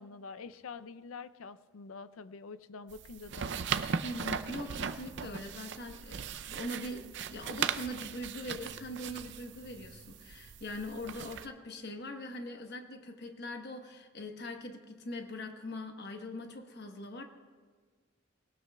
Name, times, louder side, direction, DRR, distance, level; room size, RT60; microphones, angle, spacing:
voice 1, 0.0-3.6, left 4 dB, 80° left, 14 dB, 0.5 m, -46 dB
sound 1, 2.9-11.5, right 7 dB, 55° right, 0.5 m, -38 dB
voice 2, 4.0-17.2, left 1 dB, 50° left, 4 dB, 1.1 m, -42 dB
20.5 x 18.0 x 2.3 m, 1.5 s
head